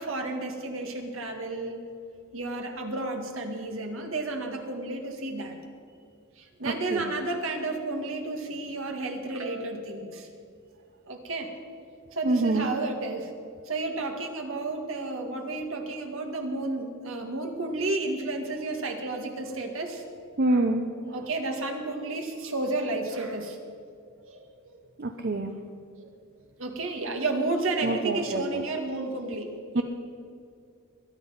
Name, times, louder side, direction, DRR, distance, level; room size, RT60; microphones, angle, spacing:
voice 1, 0.0-1.8 2.3-5.6 6.4-10.3 11.1-11.5 12.1-13.3 13.7-20.6 21.1-23.6 24.2-24.8 26.0-26.1 26.6-29.8, right 2 dB, 65° right, 4 dB, 2.0 m, -32 dB
voice 2, 6.6-7.1 12.2-12.7 20.4-20.8 25.0-25.5 27.8-28.6 29.7-29.8, right 2 dB, 45° right, 5 dB, 0.8 m, -26 dB
21.5 x 10.0 x 5.7 m, 2.3 s
head